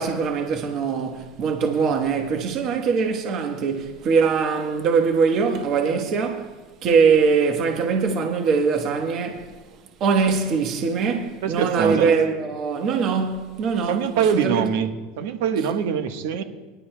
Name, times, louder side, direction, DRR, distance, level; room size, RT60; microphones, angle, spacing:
voice 1, 0.0-6.5 6.8-9.5 10.0-14.6, right 5 dB, 40° right, 1.1 m, -22 dB
voice 2, 11.4-12.1 13.9-14.9 15.2-16.4, right 7 dB, 80° right, 1.1 m, -23 dB
23.0 x 11.0 x 2.2 m
supercardioid pair, 155°, 0 cm